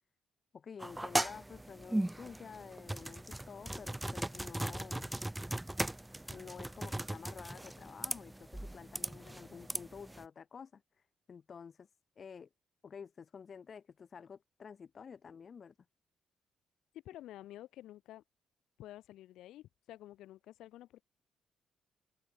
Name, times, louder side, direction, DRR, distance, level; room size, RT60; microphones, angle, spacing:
voice 1, 0.5-5.1 6.3-10.8 11.3-11.9 12.2-12.5 12.8-15.7, left 6 dB, 45° left, 5.1 m, -50 dB
sound 1, 0.8-10.2, right 1 dB, 10° right, 3.3 m, -38 dB
voice 2, 17.0-18.2 18.8-21.0, left 14 dB, 85° left, 6.6 m, -51 dB
cardioid pair, 90°, 0 cm